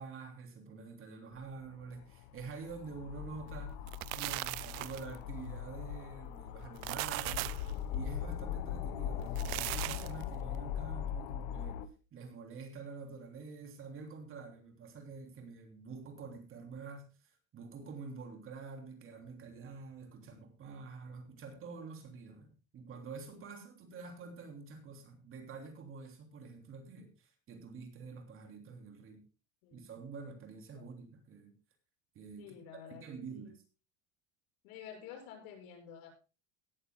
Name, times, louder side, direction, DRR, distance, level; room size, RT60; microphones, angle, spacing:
voice 1, 0.0-3.7 4.1-7.5 7.9-11.8 12.1-29.2 29.7-31.5 32.1-33.6, right 4 dB, 30° right, 4 dB, 3.2 m, -47 dB
sound 1, 1.4-11.9, left 9 dB, 70° left, 1.5 m, -40 dB
sound 2, 3.7-5.2 6.6-7.7 9.2-10.2, right 23 dB, 90° right, 0.6 m, -38 dB
voice 2, 32.4-33.0 33.3-33.6 34.6-36.1, left 8 dB, 85° left, 4 dB, 6.6 m, -50 dB
17.5 x 13.5 x 2.3 m, 0.33 s
cardioid pair, 160°, 40 cm